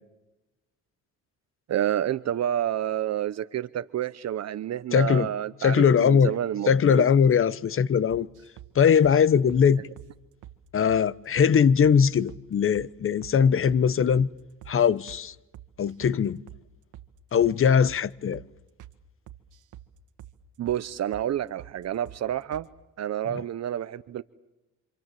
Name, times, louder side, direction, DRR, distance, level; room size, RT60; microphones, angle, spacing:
voice 1, 1.7-7.0 20.6-22.7 23.0-24.2, right 11 dB, 60° right, 0.9 m, -29 dB
voice 2, 4.9-5.3 5.6-6.3 6.7-8.3 8.7-9.8 10.7-14.3 14.7-15.3 15.8-16.4 17.3-18.4, left 7 dB, 45° left, 1.0 m, -21 dB
sound 1, 8.1-8.7 9.0-9.2 9.5-9.7 10.0-10.1 10.4-10.6 10.9-11.1 11.4-11.5 11.8-12.5 12.8-12.9 13.2-13.4 13.7-13.8 14.1-14.3 14.6-14.8 15.1-15.2 15.5-16.2 16.5-16.6 16.9-17.1 17.4-17.6 17.9-18.0 18.3-18.5 18.8-19.0 19.3-19.9 20.2-20.4 20.7-20.8 21.1-21.3 21.6-21.8 22.1-22.2 22.5-22.7, right 12 dB, 80° right, 1.6 m, -46 dB
27.0 x 27.0 x 7.6 m
cardioid pair, 90°, 30 cm